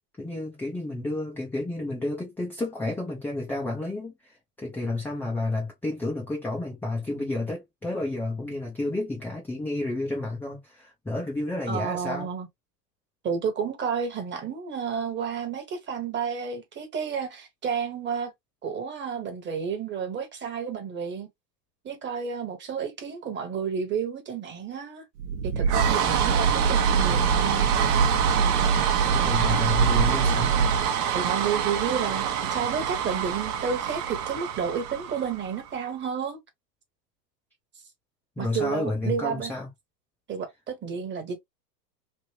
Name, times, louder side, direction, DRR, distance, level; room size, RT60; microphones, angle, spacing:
voice 1, 0.2-12.3 29.1-30.6 38.4-39.7, left 2 dB, 5° left, 0.4 m, -31 dB
voice 2, 11.7-12.5 13.2-18.3 18.6-21.3 21.8-25.0 25.5-27.7 31.1-36.4 38.4-39.5 40.3-41.4, right 6 dB, 20° right, 1.1 m, -31 dB
sound 1, 25.2-35.7, right 7 dB, 60° right, 1.0 m, -24 dB
3.3 x 2.6 x 2.7 m
hypercardioid pair, 115°, 50 cm